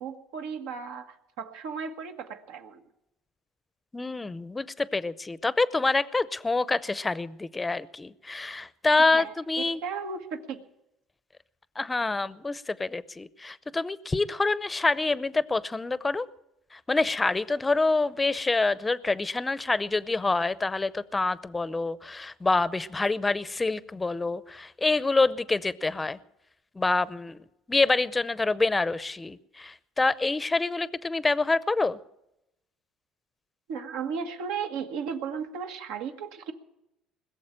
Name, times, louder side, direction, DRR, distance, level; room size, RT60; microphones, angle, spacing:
voice 1, 0.0-2.8 9.1-10.6 33.7-36.5, right 6 dB, 85° right, 5 dB, 1.5 m, -35 dB
voice 2, 3.9-9.8 11.8-16.3 16.7-26.2 26.7-27.4 27.7-32.0, left 3 dB, 15° left, 17 dB, 0.6 m, -26 dB
21.0 x 7.1 x 8.9 m, 0.85 s
supercardioid pair, 100°, 0 cm